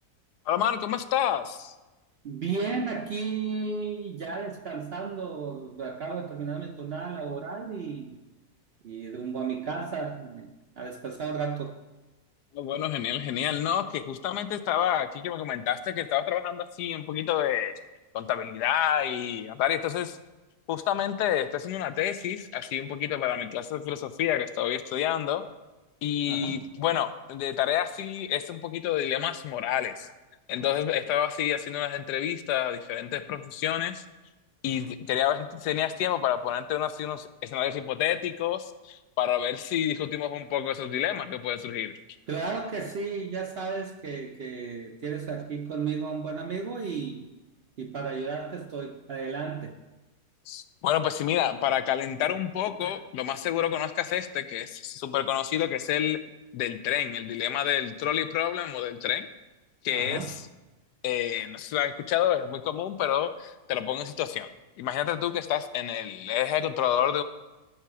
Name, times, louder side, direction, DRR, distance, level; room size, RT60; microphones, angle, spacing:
voice 1, 0.5-1.7 12.5-17.7 18.1-20.2 20.7-25.4 26.0-30.1 30.5-34.0 34.6-41.9 50.5-56.2 56.5-59.3 59.8-60.4 61.0-64.5 64.8-67.2, left 10 dB, 90° left, 11 dB, 1.2 m, -28 dB
voice 2, 2.2-8.2 8.8-11.8 26.3-26.6 30.0-30.1 42.3-47.3 47.8-49.7 52.8-53.0 59.9-60.3, right 5 dB, 60° right, 4 dB, 0.6 m, -34 dB
13.5 x 5.6 x 4.8 m, 1.1 s
omnidirectional pair, 1.7 m